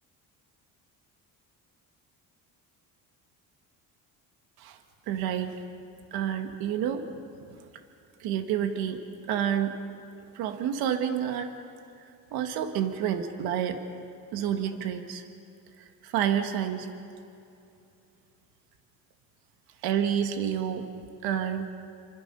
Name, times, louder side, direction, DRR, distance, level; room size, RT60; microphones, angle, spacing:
voice 1, 5.1-5.6 6.1-7.1 7.5-7.6 8.2-9.0 9.3-9.8 10.3-11.5 12.3-13.8 14.3-15.2 15.8-16.9 19.8-20.9 21.2-21.7, right 9 dB, 75° right, 6 dB, 1.9 m, -29 dB
28.5 x 25.0 x 5.6 m, 2.6 s
cardioid pair, 140°, 37 cm